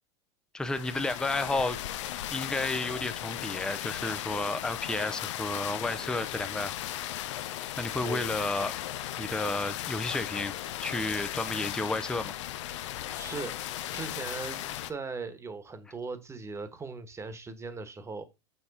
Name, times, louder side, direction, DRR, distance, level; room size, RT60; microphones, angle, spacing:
voice 1, 0.5-1.8 2.3-6.7 7.8-8.7 9.2-10.5 10.8-12.3, left 2 dB, 5° left, 0.6 m, -32 dB
sound 1, 0.6-14.9, left 13 dB, 75° left, 0.7 m, -37 dB
voice 2, 12.7-13.5 13.9-18.3, right 4 dB, 15° right, 1.3 m, -39 dB
7.1 x 4.2 x 4.2 m
hypercardioid pair, 100°, 16 cm